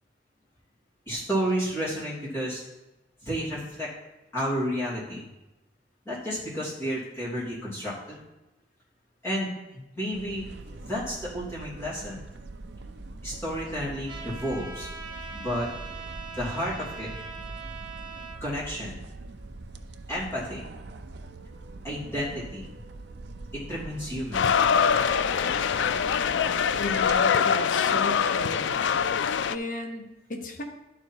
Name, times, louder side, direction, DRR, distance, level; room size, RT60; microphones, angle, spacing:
voice 1, 1.1-2.6 3.2-3.9 4.3-5.3 6.0-8.2 9.2-10.4 10.8-12.2 13.2-14.9 15.3-15.7 16.3-17.1 18.4-19.0 20.1-20.7 21.8-22.7 23.5-24.5, equal, 15° left, -9 dB, 3.1 m, -31 dB
sound 1, 10.1-27.2, right 2 dB, 65° right, 0.5 m, -43 dB
Trumpet, 14.1-18.4, right 4 dB, 25° right, 0.9 m, -41 dB
sound 2, 24.3-29.6, left 7 dB, 80° left, 0.3 m, -24 dB
voice 2, 26.8-28.7 29.5-30.6, left 2 dB, 45° left, 2 dB, 0.9 m, -34 dB
11.5 x 4.0 x 4.7 m, 1.0 s
head